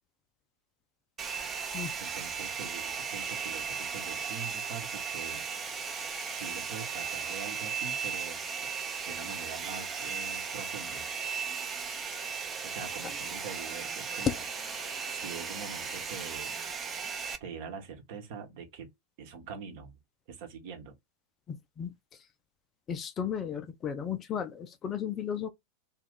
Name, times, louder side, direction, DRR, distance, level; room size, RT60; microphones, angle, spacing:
Domestic sounds home sounds, 1.2-17.4, right 6 dB, 20° right, 0.6 m, -36 dB
voice 1, 1.4-5.4 6.3-11.1 12.6-14.4 14.8-16.5 17.4-18.9 19.2-19.9 20.3-21.0, right 6 dB, 50° right, 1.0 m, -44 dB
voice 2, 21.5-21.9 22.9-25.5, left 8 dB, 25° left, 0.5 m, -34 dB
2.7 x 2.4 x 3.5 m
figure-of-eight pair, 90°, 0 cm